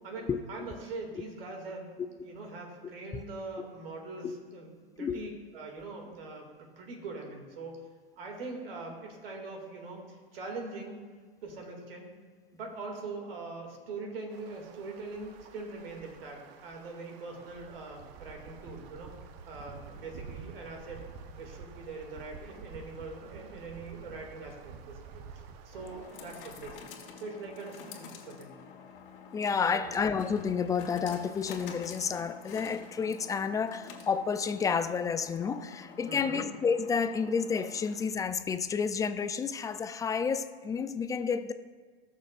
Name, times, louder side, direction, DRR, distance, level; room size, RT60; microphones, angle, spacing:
voice 1, 0.0-6.5 6.8-7.8 8.2-11.0 11.4-12.1 12.5-19.1 19.4-21.0 21.3-25.2 25.6-28.5 29.7-30.0 36.1-36.4, right 3 dB, 75° right, 2 dB, 2.4 m, -42 dB
voice 2, 5.0-5.3 29.3-41.5, left 6 dB, 10° left, 11 dB, 0.3 m, -30 dB
sound 1, 14.3-26.8, right 6 dB, 50° right, 0.8 m, -49 dB
sound 2, 24.3-38.3, left 6 dB, 60° left, 1.6 m, -49 dB
19.0 x 6.4 x 2.5 m, 1.4 s
hypercardioid pair, 100°, 30 cm